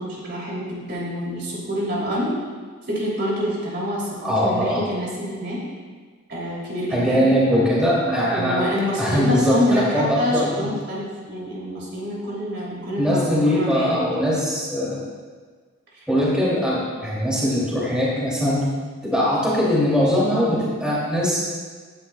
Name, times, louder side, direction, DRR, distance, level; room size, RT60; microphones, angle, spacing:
voice 1, 0.0-2.4 2.9-5.6 6.3-7.3 8.3-14.0 15.9-16.1, equal, 50° right, -5 dB, 3.2 m, -26 dB
voice 2, 4.2-4.8 6.9-8.7 9.0-10.6 13.0-15.0 16.1-18.6 19.0-21.4, equal, 5° right, -7 dB, 2.9 m, -21 dB
17.5 x 10.0 x 2.4 m, 1.5 s
head